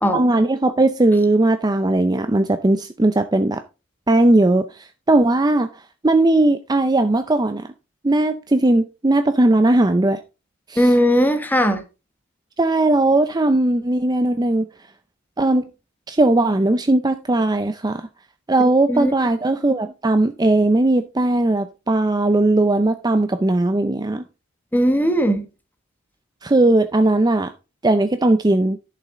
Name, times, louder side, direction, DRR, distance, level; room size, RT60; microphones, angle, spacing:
voice 1, 0.1-3.6 4.1-5.7 6.0-7.7 8.0-10.2 10.7-10.9 12.6-14.7 15.4-15.7 16.1-18.1 18.5-24.2 26.4-27.5 27.8-28.8, right 2 dB, 20° right, 0.5 m, -18 dB
voice 2, 10.8-11.8 18.6-19.1 24.7-25.4, equal, 10° left, 1.3 m, -18 dB
11.5 x 6.7 x 3.8 m
head